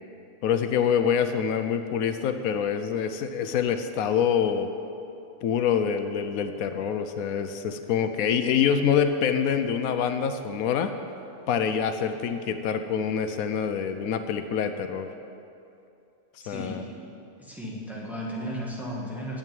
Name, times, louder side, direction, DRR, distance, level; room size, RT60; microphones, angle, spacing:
voice 1, 0.4-4.7 5.4-10.9 11.5-15.1 16.5-16.8, left 7 dB, 80° left, 9 dB, 1.1 m, -26 dB
voice 2, 16.4-16.9 17.4-19.4, equal, ahead, -4 dB, 1.8 m, -35 dB
9.0 x 7.9 x 9.1 m, 2.7 s
omnidirectional pair, 1.5 m